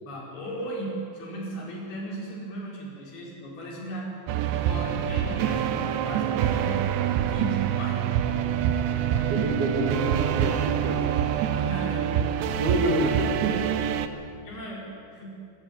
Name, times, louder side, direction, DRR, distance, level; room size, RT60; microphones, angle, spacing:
voice 1, 0.0-4.1 4.6-8.0 9.0-9.4 11.6-12.1 14.4-15.3, right 1 dB, 60° left, -3 dB, 6.4 m, -36 dB
sound 1, 4.3-14.1, right 9 dB, 85° right, 3.1 m, -26 dB
voice 2, 9.3-11.0 12.6-13.8 14.1-14.2, right 1 dB, 60° right, 2 dB, 4.0 m, -28 dB
25.0 x 13.5 x 9.2 m, 2.3 s
omnidirectional pair, 5.1 m